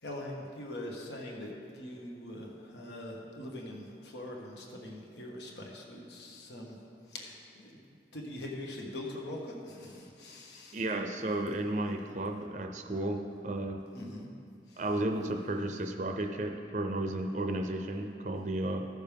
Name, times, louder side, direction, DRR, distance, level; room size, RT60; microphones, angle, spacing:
voice 1, 0.0-6.8 7.1-7.8 8.1-10.8 13.9-14.3 14.7-14.8, left 1 dB, 75° left, -1 dB, 1.5 m, -43 dB
voice 2, 10.7-13.8 14.8-18.9, right 1 dB, 40° right, 4 dB, 0.5 m, -33 dB
15.5 x 6.6 x 3.5 m, 2.5 s
head